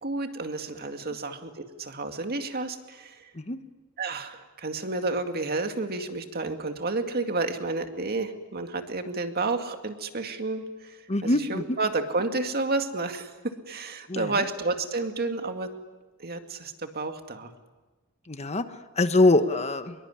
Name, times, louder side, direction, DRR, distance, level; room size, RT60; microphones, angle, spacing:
voice 1, 0.0-3.2 4.0-13.3 13.7-15.7 16.2-17.5, right 3 dB, 45° right, 6 dB, 2.2 m, -31 dB
voice 2, 11.1-11.6 14.1-14.3 18.3-18.6 19.0-19.9, left 2 dB, 30° left, 10 dB, 1.1 m, -23 dB
25.0 x 22.5 x 9.9 m, 1.2 s
head